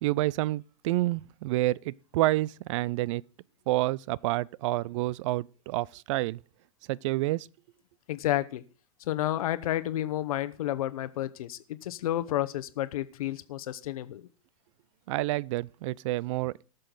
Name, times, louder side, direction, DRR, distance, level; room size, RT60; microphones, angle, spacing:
voice 1, 0.0-3.2 3.7-6.4 6.9-7.5 15.1-16.5, right 17 dB, 60° right, 0.4 m, -28 dB
voice 2, 8.1-8.6 9.1-14.2, left 13 dB, 85° left, 0.9 m, -31 dB
19.0 x 6.6 x 3.9 m
supercardioid pair, 140°, 18 cm